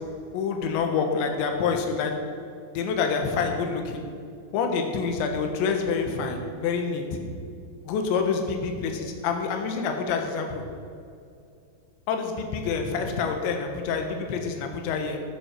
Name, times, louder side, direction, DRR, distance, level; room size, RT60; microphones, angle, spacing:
voice 1, 0.3-2.1 2.7-4.0 4.5-7.2 7.9-10.6 12.1-15.2, left 5 dB, 70° left, 4 dB, 3.3 m, -27 dB
14.0 x 8.7 x 6.5 m, 2.4 s
omnidirectional pair, 5.9 m